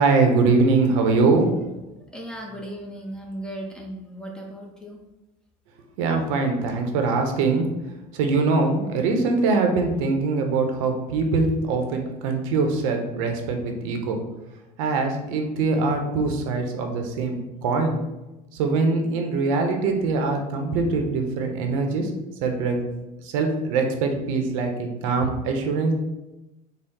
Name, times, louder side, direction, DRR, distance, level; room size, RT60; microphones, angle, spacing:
voice 1, 0.0-1.5 6.0-7.7 8.1-14.2 14.8-18.0 18.5-22.1 22.4-22.8 23.2-26.0, right 3 dB, 80° right, 4 dB, 0.7 m, -23 dB
voice 2, 2.1-5.0, right 1 dB, 5° left, 0 dB, 0.5 m, -36 dB
4.0 x 2.0 x 3.5 m, 1.0 s
supercardioid pair, 130°, 17 cm